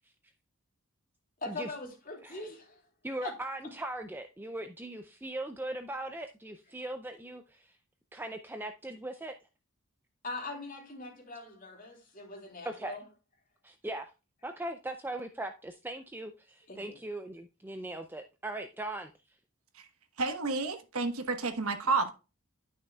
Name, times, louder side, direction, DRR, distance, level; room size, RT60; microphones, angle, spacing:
voice 1, 1.4-2.8 3.2-3.3 10.2-13.0 16.7-17.0, left 2 dB, 40° left, 3.2 m, -41 dB
voice 2, 3.0-7.8 8.1-9.3 12.6-13.0 13.6-14.1 14.4-19.1, right 1 dB, 10° right, 0.4 m, -39 dB
voice 3, 20.2-22.1, right 3 dB, 85° right, 1.2 m, -30 dB
11.5 x 6.2 x 2.3 m
head